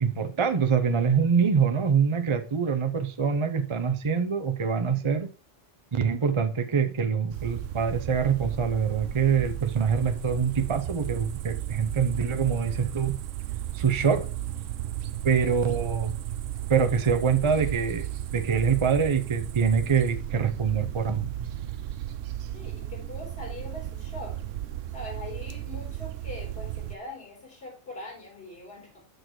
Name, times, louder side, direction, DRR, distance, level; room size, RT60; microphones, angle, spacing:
voice 1, 0.0-5.3 5.9-13.2 13.7-14.3 15.2-16.1 16.7-21.3, right 6 dB, 30° right, 0.7 m, -25 dB
sound 1, 7.3-27.0, right 12 dB, 90° right, 1.0 m, -34 dB
voice 2, 22.5-24.4 24.9-29.0, left 2 dB, 55° left, 4.5 m, -42 dB
6.6 x 6.5 x 4.6 m
omnidirectional pair, 1.3 m